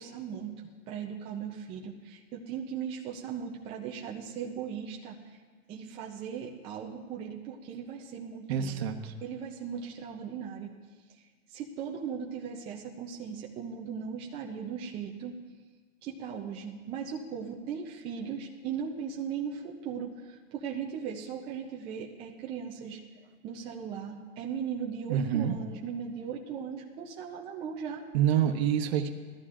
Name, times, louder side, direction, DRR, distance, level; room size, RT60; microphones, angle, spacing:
voice 1, 0.0-5.4 5.7-8.9 9.2-10.7 11.5-15.4 16.0-23.0 23.4-28.1, right 7 dB, 15° right, -1 dB, 0.5 m, -38 dB
voice 2, 8.5-9.1 25.1-25.6 28.1-29.1, right 9 dB, 45° right, 7 dB, 1.1 m, -27 dB
20.0 x 13.5 x 2.5 m, 1.5 s
hypercardioid pair, 140°, 43 cm